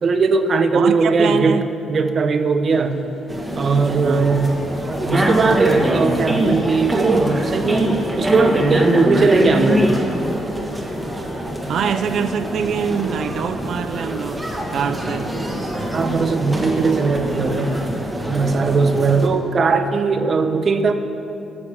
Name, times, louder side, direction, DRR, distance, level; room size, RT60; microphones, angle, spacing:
voice 1, 0.0-3.0 3.6-4.5 5.1-9.9 15.9-17.8 18.3-20.9, right 4 dB, 45° right, 0.7 m, -19 dB
voice 2, 0.7-1.7 4.0-4.3 11.7-15.3, right 7 dB, 65° right, 0.4 m, -24 dB
sound 1, 2.7-18.0, equal, 40° left, 2.0 m, -40 dB
sound 2, 3.3-19.3, equal, 15° right, 1.4 m, -23 dB
9.8 x 6.9 x 6.9 m
cardioid pair, 90°, 0 cm